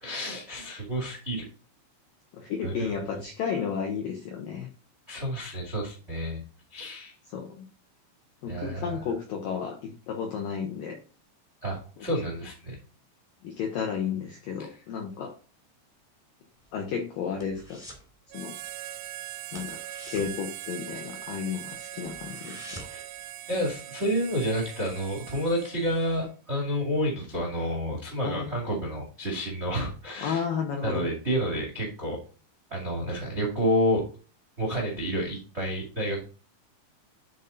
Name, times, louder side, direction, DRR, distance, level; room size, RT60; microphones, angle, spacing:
voice 1, 0.0-1.5 2.6-2.9 5.1-6.4 6.7-7.1 8.5-9.0 11.6-12.8 14.6-14.8 22.9-23.0 23.5-30.4 30.8-32.2 32.7-34.0 34.6-36.2, equal, 50° right, -1 dB, 0.7 m, -29 dB
voice 2, 2.3-4.7 7.3-7.7 8.4-11.0 13.4-15.3 16.7-17.8 18.3-18.5 19.5-19.8 20.1-22.9 28.2-28.6 30.2-31.1, left 7 dB, 80° left, 2 dB, 2.0 m, -32 dB
sound 1, 16.5-18.1 18.4-18.7 19.0-19.1 19.5-21.3 21.7-21.8 22.0-23.1 23.5-23.6, equal, 20° left, 0.9 m, -47 dB
Harmonica, 18.3-26.4, right 13 dB, 85° right, 2.5 m, -41 dB
10.0 x 4.3 x 3.9 m, 0.37 s
omnidirectional pair, 5.5 m